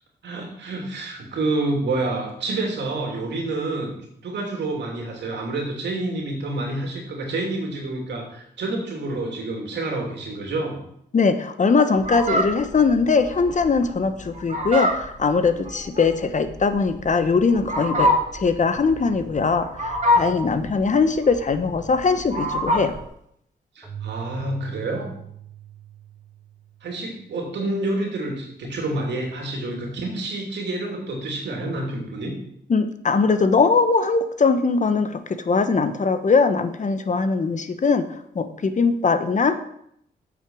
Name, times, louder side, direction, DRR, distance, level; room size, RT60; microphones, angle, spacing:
voice 1, 0.2-3.9 4.2-10.8 23.7-25.1 26.8-32.3, right 2 dB, 80° right, 0 dB, 2.8 m, -28 dB
voice 2, 11.1-23.0 32.7-38.0 38.3-39.5, left 4 dB, 45° left, 10 dB, 1.0 m, -21 dB
Fowl, 12.0-23.0, left 1 dB, 40° right, 2.7 m, -25 dB
Keyboard (musical), 23.8-27.3, right 11 dB, 5° right, 2.1 m, -41 dB
8.3 x 6.0 x 6.3 m, 0.72 s
cardioid pair, 70°, 18 cm